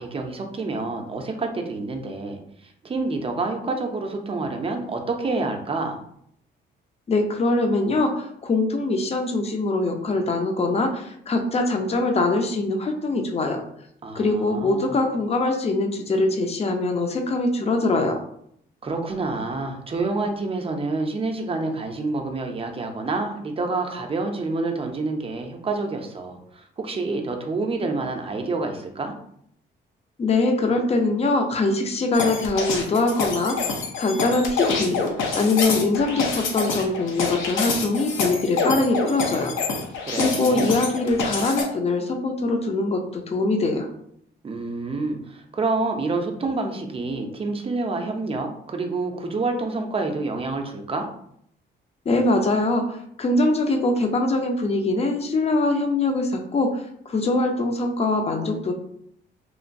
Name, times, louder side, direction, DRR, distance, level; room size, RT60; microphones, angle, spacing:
voice 1, 0.0-6.0 14.0-14.9 18.8-29.1 40.0-40.8 44.4-51.1, right 3 dB, 30° right, 4 dB, 0.5 m, -28 dB
voice 2, 7.1-13.6 14.1-18.2 30.2-33.6 34.0-35.0 35.3-39.5 40.2-43.9 52.1-58.7, left 2 dB, 30° left, 4 dB, 0.5 m, -23 dB
sound 1, 32.1-41.6, left 4 dB, 80° left, 0.6 m, -26 dB
3.0 x 2.1 x 2.5 m, 0.70 s
cardioid pair, 90°, 20 cm